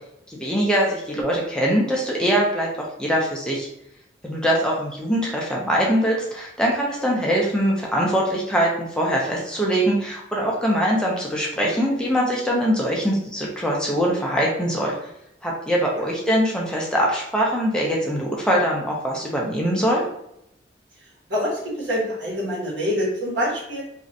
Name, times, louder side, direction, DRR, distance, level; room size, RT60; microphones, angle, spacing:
voice 1, 0.3-3.7 4.2-14.9 15.4-20.0, equal, 5° left, -3 dB, 0.5 m, -22 dB
voice 2, 21.3-23.8, equal, 75° right, -5 dB, 1.3 m, -25 dB
3.0 x 2.5 x 2.6 m, 0.78 s
head